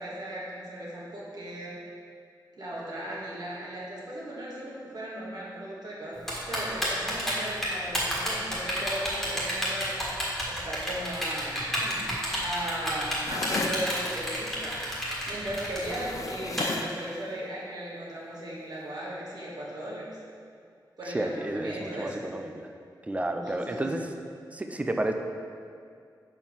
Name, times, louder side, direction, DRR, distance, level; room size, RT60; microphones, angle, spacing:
voice 1, 0.0-1.8 2.6-10.1 10.5-12.1 12.4-14.8 15.3-20.1 21.0-22.2 23.2-23.8, right 1 dB, 60° right, -6 dB, 1.6 m, -37 dB
Typing, 6.3-16.6, equal, 5° left, 1.6 m, -30 dB
sound 1, 13.2-13.8 15.8-17.0, left 4 dB, 45° left, 0.3 m, -34 dB
voice 2, 21.1-22.7 23.1-24.1 24.5-25.1, right 1 dB, 15° right, 5 dB, 0.4 m, -31 dB
5.4 x 4.5 x 6.2 m, 2.3 s
wide cardioid pair, 130°, 8 cm